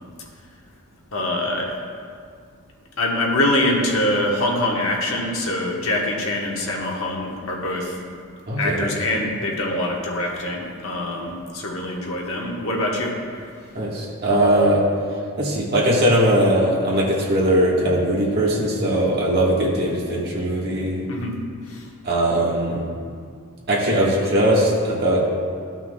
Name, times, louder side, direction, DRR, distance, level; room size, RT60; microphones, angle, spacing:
voice 1, 1.1-1.7 3.0-8.0 8.6-13.2 21.1-21.4 21.7-21.8, left 1 dB, 65° left, 0 dB, 1.1 m, -24 dB
voice 2, 8.5-8.9 13.7-14.8 15.4-21.0 22.0-22.8 23.7-25.2, right 1 dB, 45° right, -4 dB, 1.5 m, -20 dB
13.5 x 5.9 x 2.3 m, 2.2 s
head